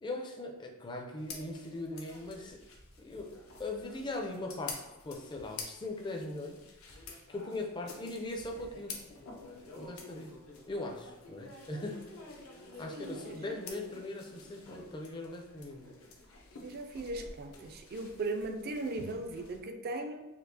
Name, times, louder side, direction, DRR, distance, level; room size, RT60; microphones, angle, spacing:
voice 1, 0.0-2.6 3.0-6.6 7.3-9.0 9.7-10.3 10.7-12.1 12.5-15.9, left 2 dB, 20° left, 1 dB, 0.4 m, -40 dB
sound 1, 1.2-19.6, left 4 dB, 85° left, 0.6 m, -49 dB
voice 2, 12.9-13.6 16.6-20.3, right 2 dB, 45° right, 5 dB, 0.4 m, -38 dB
4.4 x 2.4 x 2.6 m, 1.0 s
head